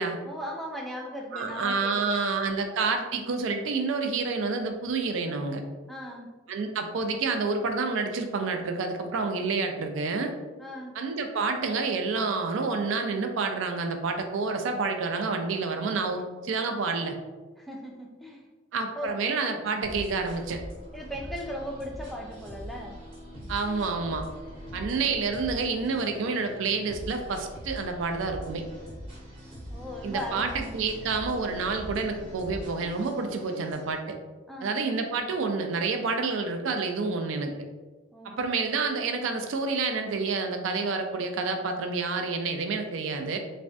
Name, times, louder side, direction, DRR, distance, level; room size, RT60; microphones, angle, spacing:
voice 1, 0.2-2.5 5.9-6.3 10.6-11.0 17.6-18.5 19.0-19.1 20.9-23.0 24.7-25.1 29.7-30.8 34.5-34.8 38.1-38.4, equal, ahead, -1 dB, 0.3 m, -38 dB
voice 2, 1.3-5.6 6.5-10.3 11.0-17.1 18.7-20.6 23.5-24.3 24.7-28.6 30.0-34.2 34.6-37.5 38.2-43.4, right 4 dB, 80° right, 5 dB, 0.4 m, -29 dB
sound 1, 19.8-33.9, equal, 30° right, 0.8 m, -42 dB
3.3 x 2.1 x 2.5 m, 1.3 s
head